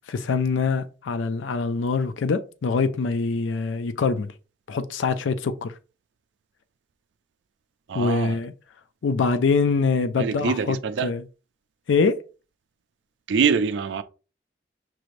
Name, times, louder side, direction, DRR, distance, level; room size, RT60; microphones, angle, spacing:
voice 1, 0.1-4.3 4.7-5.7 7.9-8.5 9.0-10.8 11.0-11.2 11.9-12.2, left 4 dB, 90° left, 0.4 m, -24 dB
voice 2, 7.9-8.4 10.2-11.1 13.3-14.0, right 6 dB, 70° right, 0.3 m, -24 dB
5.9 x 3.1 x 2.5 m
head